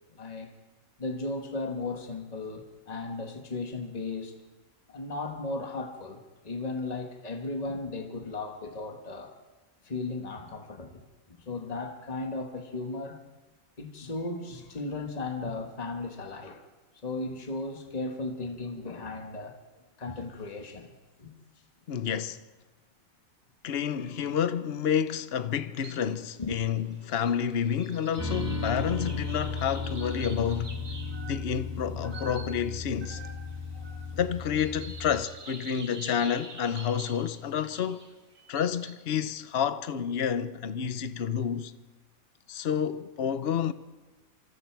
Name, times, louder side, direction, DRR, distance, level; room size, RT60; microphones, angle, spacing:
voice 1, 0.1-0.5 1.0-4.3 4.9-9.3 9.8-13.2 13.8-16.7 17.0-19.6 20.0-20.9 21.2-21.4 26.4-26.5, left 3 dB, 30° left, 1.7 m, -36 dB
voice 2, 21.9-22.4 23.6-30.8 31.3-33.2 34.1-38.0 38.5-41.7 42.5-43.7, left 8 dB, 50° left, 1.0 m, -29 dB
sound 1, 25.8-26.2 26.5-38.9, right 3 dB, 45° right, 3.8 m, -47 dB
sound 2, 28.2-35.2, left 3 dB, 10° right, 2.7 m, -35 dB
27.0 x 25.0 x 4.7 m
omnidirectional pair, 1.5 m